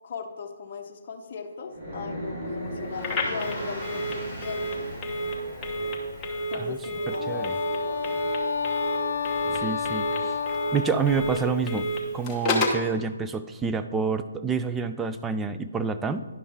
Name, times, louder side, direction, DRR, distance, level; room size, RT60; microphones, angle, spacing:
voice 1, 0.0-4.9 6.5-8.2, left 5 dB, 40° left, 0 dB, 0.8 m, -38 dB
sound 1, 1.7-6.8, equal, 50° right, 2.0 m, -37 dB
Telephone, 3.0-12.9, equal, 15° left, 1.1 m, -31 dB
Wind instrument woodwind instrument, 7.0-11.7, left 5 dB, 70° left, 0.9 m, -30 dB
voice 2, 7.1-7.5 9.5-10.4 10.7-11.9 12.1-16.3, right 5 dB, 10° right, 10 dB, 0.3 m, -28 dB
11.0 x 5.3 x 3.5 m, 1.3 s
hypercardioid pair, 150°, 0 cm